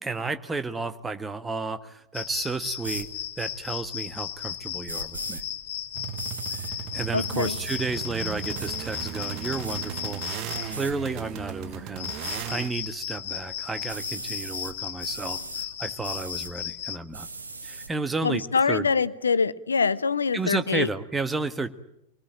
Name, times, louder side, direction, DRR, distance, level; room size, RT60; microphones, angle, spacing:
voice 1, 0.0-3.1 3.4-5.4 6.5-6.6 6.9-17.3 17.6-18.4 18.7-18.9 20.3-21.7, right 3 dB, 10° right, 9 dB, 1.6 m, -32 dB
sound 1, 2.1-17.0, left 10 dB, 55° left, 1.4 m, -35 dB
sound 2, 2.8-3.1 4.9-5.4 6.2-6.7 7.3-7.8 8.5-8.7 9.3-9.8 10.7-10.9 12.2-12.5 13.9-14.7 15.0-15.7 16.0-16.5 17.1-17.9, right 3 dB, 80° right, 1.7 m, -38 dB
sound 3, 5.9-12.7, right 11 dB, 40° right, 1.1 m, -36 dB
voice 2, 7.1-7.6 18.2-20.9, left 5 dB, 75° left, 16 dB, 0.9 m, -24 dB
27.0 x 20.0 x 9.1 m, 0.83 s
figure-of-eight pair, 90°, 0 cm